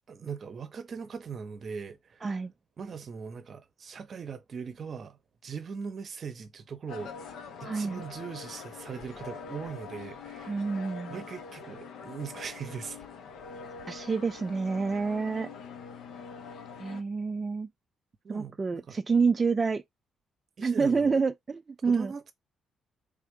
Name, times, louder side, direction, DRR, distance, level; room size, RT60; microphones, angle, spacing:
voice 1, 0.1-2.3 2.8-10.6 11.1-13.0 18.2-19.0 20.6-21.2 21.9-22.3, right 6 dB, 50° right, 0.7 m, -40 dB
voice 2, 2.2-2.5 7.6-8.0 10.5-11.1 13.9-15.5 16.8-17.7 18.3-19.8 20.6-22.1, right 4 dB, 30° right, 0.3 m, -28 dB
sound 1, 6.9-17.0, left 5 dB, 75° left, 0.7 m, -44 dB
3.5 x 2.5 x 3.5 m
cardioid pair, 90°, 0 cm